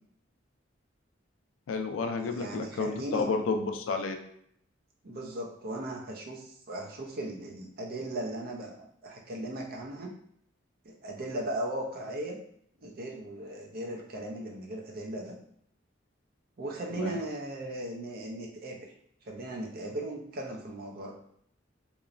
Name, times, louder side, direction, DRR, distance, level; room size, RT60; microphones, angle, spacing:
voice 1, 1.7-4.2 17.0-17.2, left 4 dB, 85° left, 5 dB, 0.4 m, -31 dB
voice 2, 2.2-3.3 5.0-10.1 10.8-12.4 12.8-15.4 16.6-18.8 19.2-21.1, right 1 dB, 50° right, 0 dB, 0.5 m, -37 dB
2.9 x 2.0 x 2.4 m, 0.68 s
head